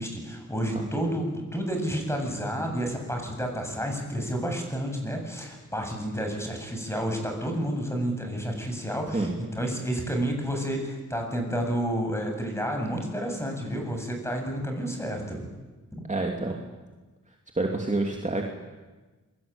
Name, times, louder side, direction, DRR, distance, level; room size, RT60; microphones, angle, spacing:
voice 1, 0.0-9.3 9.6-15.5, equal, 10° left, 3 dB, 7.8 m, -30 dB
voice 2, 0.7-1.1 9.1-9.4 16.1-16.6 17.6-18.4, right 2 dB, 25° right, 1 dB, 2.9 m, -28 dB
27.5 x 23.0 x 9.0 m, 1.2 s
wide cardioid pair, 100°, 30 cm